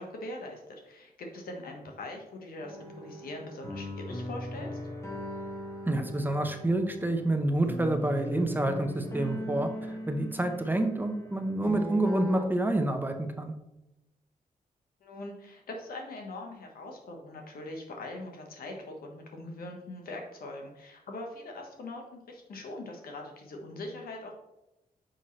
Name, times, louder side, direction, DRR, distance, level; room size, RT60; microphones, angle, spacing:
voice 1, 0.0-4.8 15.0-24.3, left 2 dB, 85° left, 2 dB, 1.3 m, -42 dB
sound 1, 2.6-12.4, equal, 20° left, 2.0 m, -39 dB
voice 2, 5.9-9.7 10.1-13.5, right 1 dB, 15° right, 6 dB, 0.8 m, -28 dB
6.4 x 5.4 x 3.2 m, 0.94 s
cardioid pair, 70°, 15 cm